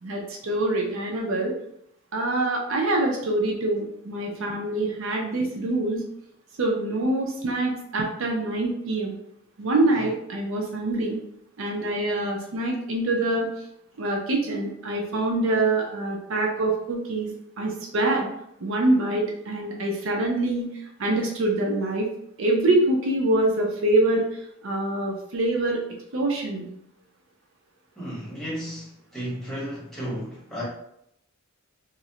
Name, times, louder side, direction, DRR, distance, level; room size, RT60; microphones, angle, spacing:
voice 1, 0.0-1.5 2.1-6.0 6.6-9.2 9.6-11.2 11.6-13.5 14.0-17.3 17.6-18.3 18.6-20.7 21.0-22.1 22.4-25.8 26.1-26.7, right 2 dB, 65° right, 0 dB, 0.5 m, -25 dB
voice 2, 28.0-30.6, equal, ahead, -8 dB, 1.0 m, -34 dB
2.5 x 2.0 x 2.8 m, 0.75 s
head